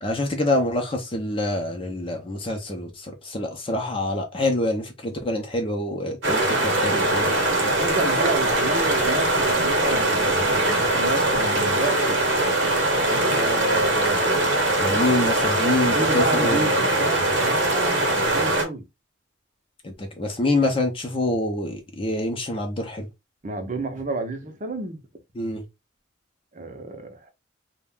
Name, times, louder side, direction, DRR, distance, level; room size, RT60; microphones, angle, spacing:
voice 1, 0.0-7.5 14.8-16.7 19.8-23.1 25.4-25.6, left 1 dB, 25° left, 0.5 m, -26 dB
sound 1, 6.2-18.6, right 2 dB, 60° right, 0.9 m, -21 dB
voice 2, 7.4-12.2 13.1-14.2 15.7-18.8 23.4-25.0 26.5-27.3, right 2 dB, 40° right, 0.6 m, -31 dB
2.4 x 2.1 x 3.4 m
head